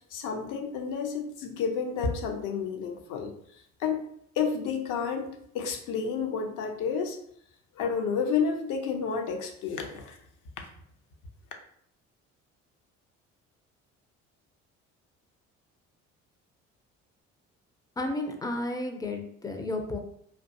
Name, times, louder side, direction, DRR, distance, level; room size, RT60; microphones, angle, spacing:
voice 1, 0.1-3.3 3.8-4.1 4.4-5.3 5.5-7.2 7.8-10.2, left 6 dB, 55° left, 4 dB, 0.6 m, -30 dB
voice 2, 18.0-20.0, left 2 dB, 10° left, 4 dB, 0.4 m, -32 dB
2.4 x 2.2 x 2.6 m, 0.68 s
hypercardioid pair, 50°, 37 cm